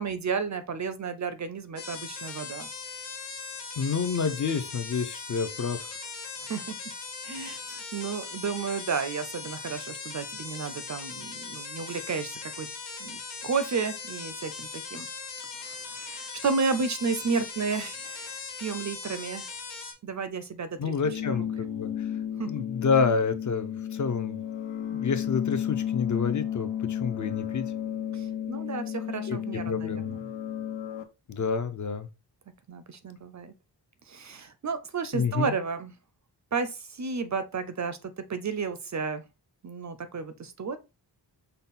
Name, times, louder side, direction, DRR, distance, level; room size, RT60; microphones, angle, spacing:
voice 1, 0.0-2.7 6.5-6.7 7.2-12.7 13.0-15.1 15.6-19.5 20.0-20.9 21.4-21.5 22.4-22.6 28.1-30.2 32.7-33.5 34.1-35.9 36.5-39.2 39.6-40.8, right 5 dB, 40° right, 0.4 m, -32 dB
sound 1, 1.8-19.9, left 4 dB, 65° left, 1.2 m, -39 dB
voice 2, 3.8-5.9 20.8-22.1 22.5-24.4 24.9-27.6 29.3-30.3 31.3-32.1 35.1-35.5, left 5 dB, 45° left, 0.5 m, -29 dB
sound 2, 21.0-31.0, left 10 dB, 85° left, 0.7 m, -33 dB
5.4 x 2.2 x 4.1 m
wide cardioid pair, 160°, 44 cm